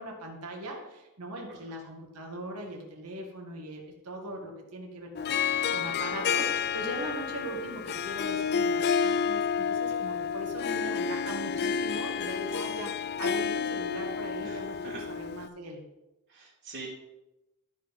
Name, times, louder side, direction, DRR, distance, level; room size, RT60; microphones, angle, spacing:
voice 1, 0.0-15.8, right 1 dB, 85° right, 0 dB, 1.9 m, -40 dB
Harp, 5.2-15.5, left 6 dB, 45° left, 0.4 m, -30 dB
voice 2, 14.4-15.0 16.3-16.9, right 3 dB, 50° right, -7 dB, 2.3 m, -44 dB
13.0 x 4.9 x 5.4 m, 0.97 s
head